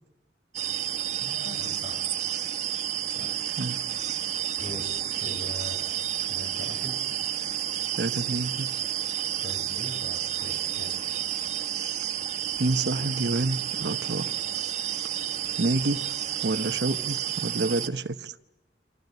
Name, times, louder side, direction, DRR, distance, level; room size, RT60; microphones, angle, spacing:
sound 1, 0.5-17.9, right 10 dB, 40° right, 1.5 m, -31 dB
voice 1, 1.2-2.0 3.1-3.4 4.6-5.9 6.2-7.1 9.4-11.0, left 1 dB, 60° left, 6.6 m, -41 dB
voice 2, 8.0-8.7 12.6-14.3 15.6-18.4, right 2 dB, 70° right, 1.0 m, -28 dB
27.0 x 27.0 x 8.1 m
head